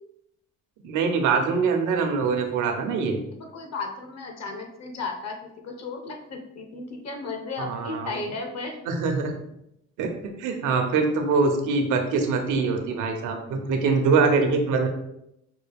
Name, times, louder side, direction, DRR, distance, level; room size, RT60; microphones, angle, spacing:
voice 1, 0.8-3.2 7.6-8.1 8.9-9.3 10.0-10.1 10.4-14.9, right 4 dB, 85° right, 4 dB, 0.7 m, -23 dB
voice 2, 3.4-8.8, left 3 dB, 60° left, 4 dB, 0.9 m, -34 dB
5.3 x 2.3 x 3.4 m, 0.80 s
cardioid pair, 90°, 30 cm